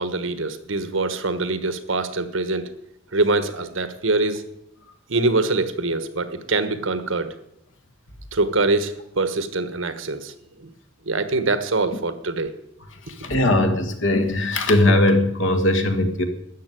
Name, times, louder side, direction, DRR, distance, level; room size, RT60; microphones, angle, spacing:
voice 1, 0.0-2.6 3.1-4.4 5.1-7.3 8.3-10.3 10.6-10.7 11.1-12.5, right 3 dB, 75° right, 11 dB, 1.3 m, -24 dB
voice 2, 13.2-16.2, left 1 dB, 70° left, 6 dB, 1.9 m, -19 dB
13.0 x 7.7 x 9.2 m, 0.79 s
head